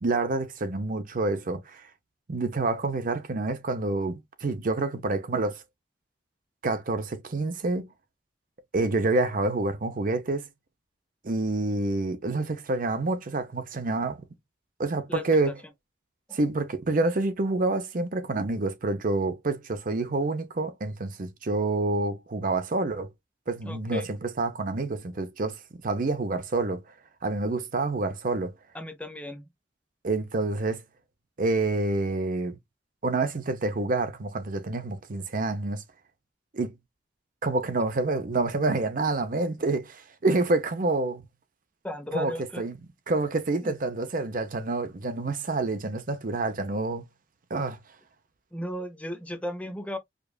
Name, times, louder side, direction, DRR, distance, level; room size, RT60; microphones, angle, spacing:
voice 1, 0.0-1.9 2.3-5.6 6.6-7.9 8.7-10.5 11.2-14.2 14.8-15.6 16.3-23.1 23.5-26.8 27.2-28.5 30.0-30.8 31.4-32.6 33.0-35.8 36.5-36.7 37.4-41.2 42.1-42.8 43.1-47.1 47.5-47.8, right 2 dB, 50° right, 0.7 m, -28 dB
voice 2, 15.1-15.5 16.3-16.4 23.6-24.1 28.7-29.4 41.8-42.6 43.6-43.7 48.5-50.0, left 1 dB, 10° left, 0.7 m, -35 dB
5.1 x 2.4 x 2.3 m
head